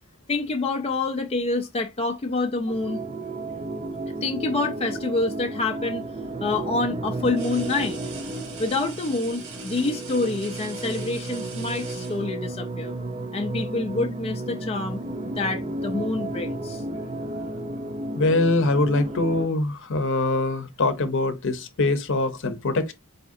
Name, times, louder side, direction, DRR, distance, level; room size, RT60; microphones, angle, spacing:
voice 1, 0.3-3.0 4.2-6.1 6.4-8.0 8.6-13.0 13.3-15.0 15.4-16.8, left 3 dB, 30° left, 0.4 m, -27 dB
sound 1, 2.7-19.5, right 2 dB, 30° right, 0.6 m, -33 dB
sound 2, 2.9-3.8 5.5-5.7 7.2-12.7 13.9-14.1 14.5-15.3 15.5-15.9 16.8-19.4, right 5 dB, 75° right, 1.5 m, -45 dB
voice 2, 18.1-22.9, left 2 dB, 65° left, 0.7 m, -23 dB
4.1 x 3.6 x 2.6 m
head